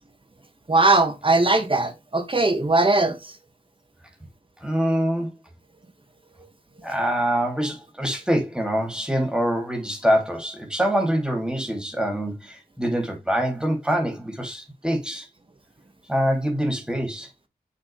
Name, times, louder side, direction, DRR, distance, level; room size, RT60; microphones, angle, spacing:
voice 1, 0.7-3.3, right 2 dB, 35° right, 2.1 m, -20 dB
voice 2, 4.6-5.3 6.8-15.3 16.1-17.3, equal, 5° right, 2.9 m, -25 dB
7.0 x 6.7 x 3.4 m
cardioid pair, 45°, 16 cm